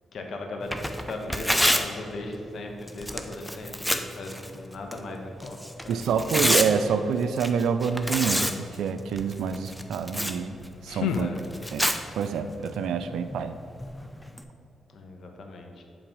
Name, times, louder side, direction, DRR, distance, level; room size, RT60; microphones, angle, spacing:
voice 1, 0.1-5.6 5.8-6.1 11.1-11.4 14.9-15.8, left 2 dB, 65° left, 2 dB, 1.2 m, -38 dB
Tearing, 0.6-14.4, equal, 5° left, 0.7 m, -31 dB
voice 2, 5.9-10.5 10.8-11.3 11.7-11.8 12.2-13.5, right 6 dB, 80° right, 10 dB, 0.3 m, -27 dB
sound 1, 10.4-12.0, left 6 dB, 85° left, 0.3 m, -33 dB
7.8 x 3.9 x 6.1 m, 2.6 s
supercardioid pair, 50°, 0 cm